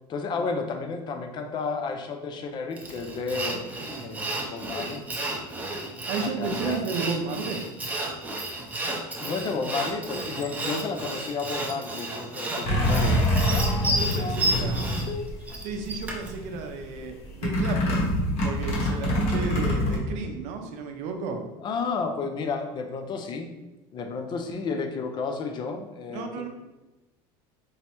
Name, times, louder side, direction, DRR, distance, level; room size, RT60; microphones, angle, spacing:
voice 1, 0.0-3.7 4.0-5.1 6.2-6.8 9.2-15.3 19.1-19.3 21.6-23.5 23.9-26.5, left 4 dB, 35° left, 5 dB, 0.5 m, -32 dB
Sawing, 2.8-16.4, right 1 dB, 10° right, 0.6 m, -32 dB
voice 2, 6.1-7.7 14.0-14.8 15.6-18.1 18.4-21.4 26.1-26.5, right 5 dB, 65° right, 4 dB, 0.6 m, -33 dB
sound 1, 12.6-15.6 16.0-16.6 17.4-20.0, equal, 60° left, 1.0 m, -25 dB
4.7 x 2.0 x 2.9 m, 1.1 s
supercardioid pair, 120°, 13 cm